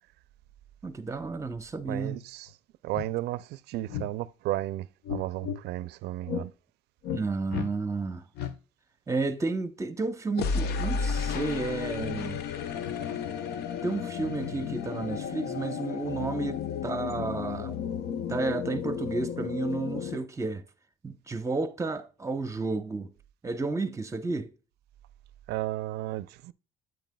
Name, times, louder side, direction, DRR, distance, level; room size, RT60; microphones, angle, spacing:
voice 1, 0.8-2.2 7.1-8.2 9.1-12.4 13.8-17.8 18.3-20.6 21.0-23.1 23.4-24.5, right 3 dB, 15° right, 0.8 m, -32 dB
voice 2, 1.9-2.5 2.8-6.5 25.5-26.5, right 15 dB, 80° right, 0.4 m, -33 dB
sound 1, 2.5-2.6 2.9-3.1 3.9-4.1 5.1-5.6 6.3-6.5 7.0-7.2 7.5-7.7 8.4-8.5 10.3-20.2, left 6 dB, 70° left, 0.7 m, -33 dB
9.1 x 7.9 x 2.2 m
cardioid pair, 110°, 17 cm